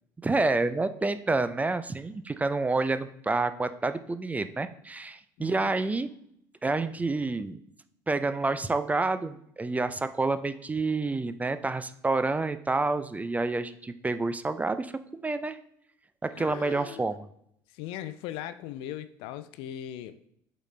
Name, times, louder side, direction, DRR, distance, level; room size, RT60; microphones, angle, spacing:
voice 1, 0.2-6.1 6.6-7.6 8.1-15.6 16.2-17.3, right 3 dB, 15° right, 12 dB, 0.4 m, -28 dB
voice 2, 5.4-5.8 16.3-17.0 17.7-20.2, left 11 dB, 65° left, 12 dB, 0.4 m, -39 dB
7.9 x 4.1 x 3.2 m, 0.72 s
hypercardioid pair, 65°, 10 cm